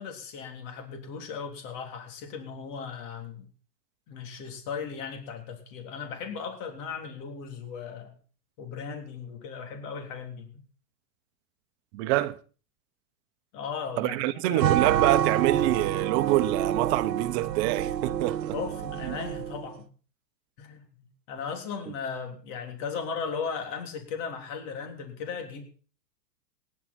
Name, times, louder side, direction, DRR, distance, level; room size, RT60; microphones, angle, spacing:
voice 1, 0.0-3.5 4.1-8.1 8.6-10.6 13.5-14.7 18.5-19.9 20.6-25.6, left 6 dB, 45° left, 3.4 m, -37 dB
voice 2, 11.9-12.4 14.0-18.6 19.0-19.2, right 17 dB, 40° right, 1.0 m, -26 dB
sound 1, 14.6-19.7, right 10 dB, 80° right, 1.1 m, -28 dB
18.5 x 10.5 x 4.3 m
hypercardioid pair, 125°, 49 cm